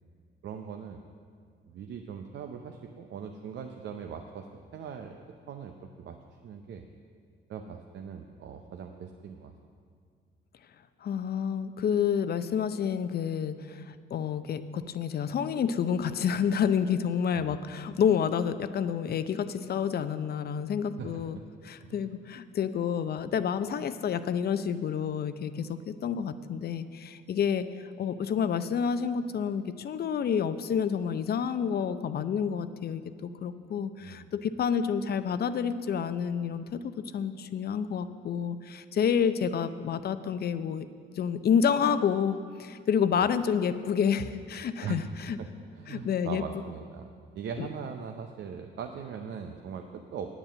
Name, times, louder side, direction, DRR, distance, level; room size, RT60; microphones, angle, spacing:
voice 1, 0.4-1.0 1.7-5.2 5.5-6.2 6.4-6.9 7.5-9.5 17.3-17.5 21.0-21.3 21.8-22.1 34.0-34.3 44.8-45.0 45.4-45.5 45.7-50.4, right 7 dB, 65° right, 4 dB, 0.7 m, -40 dB
voice 2, 11.0-21.4 21.6-27.7 28.0-40.9 41.2-45.4 45.9-46.4 47.6-47.7, left 7 dB, 50° left, 12 dB, 0.6 m, -29 dB
9.1 x 8.1 x 7.3 m, 2.1 s
cardioid pair, 90°, 20 cm